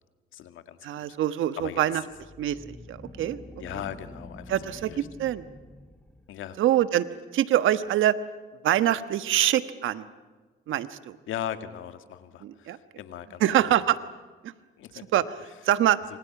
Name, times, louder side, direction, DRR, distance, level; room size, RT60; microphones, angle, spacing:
voice 1, 0.3-0.8 1.1-1.2 1.6-2.0 3.6-5.1 6.3-6.6 11.3-13.7 14.8-15.1, left 10 dB, 85° left, 9 dB, 2.0 m, -38 dB
voice 2, 0.8-2.0 2.4-3.4 4.5-5.4 6.6-7.1 7.3-8.1 8.6-10.0 10.7-11.2 12.4-12.8 13.4-14.0 14.4-14.5 15.1-15.2 15.7-16.0, right 12 dB, 80° right, 12 dB, 1.3 m, -24 dB
sound 1, 2.1-6.5, left 1 dB, 5° left, 1.9 m, -46 dB
28.5 x 26.5 x 6.0 m, 1.4 s
cardioid pair, 90°, 20 cm